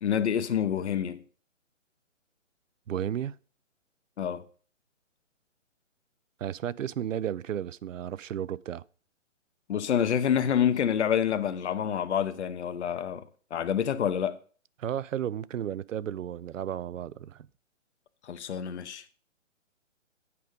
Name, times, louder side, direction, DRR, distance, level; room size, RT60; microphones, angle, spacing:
voice 1, 0.0-1.2 4.2-4.4 9.7-13.2 13.5-14.4 18.2-19.0, left 8 dB, 60° left, 0.8 m, -27 dB
voice 2, 2.9-3.3 6.4-8.8 14.8-17.5, right 10 dB, 75° right, 0.5 m, -33 dB
8.5 x 5.1 x 5.3 m
figure-of-eight pair, 140°, 38 cm